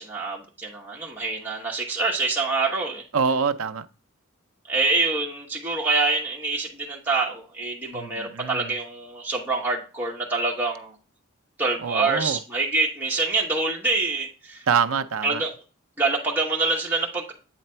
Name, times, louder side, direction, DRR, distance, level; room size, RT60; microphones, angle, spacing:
voice 1, 0.0-3.0 4.7-10.9 11.6-14.7 15.2-15.5 16.0-17.3, right 3 dB, 10° right, 1.1 m, -26 dB
voice 2, 3.1-3.9 7.9-8.7 11.8-12.4 14.7-15.4, right 6 dB, 75° right, 0.5 m, -25 dB
8.4 x 3.3 x 4.3 m
head